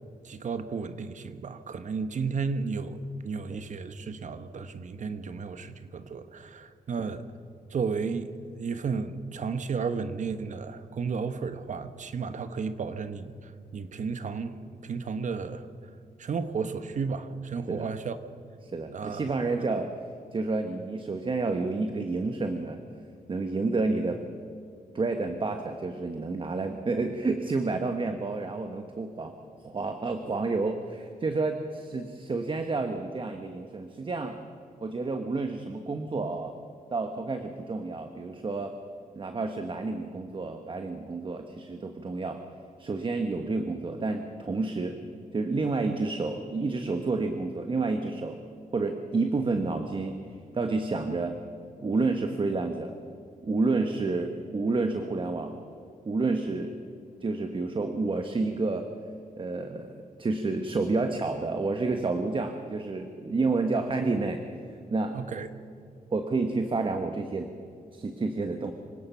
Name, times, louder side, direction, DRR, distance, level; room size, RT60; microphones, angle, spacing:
voice 1, 0.2-7.3 7.7-8.3 8.6-15.7 16.2-18.2 18.9-19.4 65.1-65.5, right 5 dB, 55° right, 10 dB, 1.2 m, -33 dB
voice 2, 18.7-19.9 20.3-22.8 23.3-24.2 24.9-29.3 29.6-34.4 34.8-36.5 36.9-38.8 39.1-42.4 42.8-45.0 45.3-48.4 48.7-50.2 50.5-51.4 51.8-52.9 53.4-55.6 56.0-56.8 57.2-58.9 59.4-64.4 64.7-65.2 66.1-67.5 67.9-68.7, right 3 dB, 35° right, 6 dB, 1.3 m, -29 dB
26.0 x 17.5 x 5.7 m, 2.4 s
wide cardioid pair, 110°, 15 cm